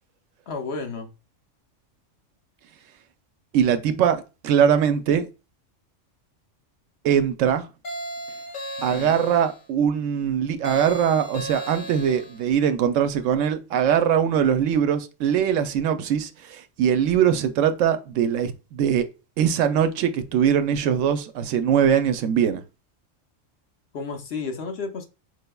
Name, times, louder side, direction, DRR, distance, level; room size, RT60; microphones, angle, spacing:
voice 1, 0.5-1.1 8.9-9.2 23.9-25.0, left 4 dB, 60° left, 0.9 m, -32 dB
voice 2, 3.5-5.3 7.0-7.6 8.8-19.1 19.4-22.6, right 8 dB, 80° right, 0.9 m, -21 dB
sound 1, 7.8-9.6 10.6-12.4, right 1 dB, 85° left, 1.5 m, -35 dB
4.7 x 3.3 x 2.2 m
omnidirectional pair, 1.3 m